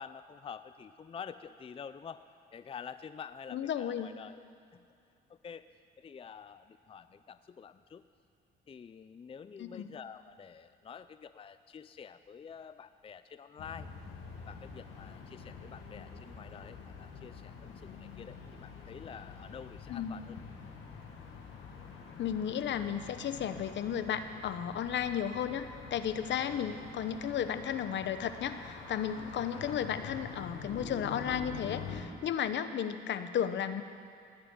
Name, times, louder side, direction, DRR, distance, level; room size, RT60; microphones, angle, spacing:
voice 1, 0.0-2.2 2.5-4.8 5.3-5.7 6.0-8.0 8.7-13.9 14.5-20.4 26.3-26.8 29.1-29.7, left 7 dB, 30° left, 12 dB, 0.4 m, -48 dB
voice 2, 3.5-4.1 9.6-9.9 19.9-20.2 22.2-33.8, left 9 dB, 65° left, 10 dB, 0.9 m, -34 dB
sound 1, 13.6-32.0, left 5 dB, 90° left, 2.1 m, -46 dB
18.5 x 6.9 x 9.0 m, 2.6 s
cardioid pair, 90°, 20 cm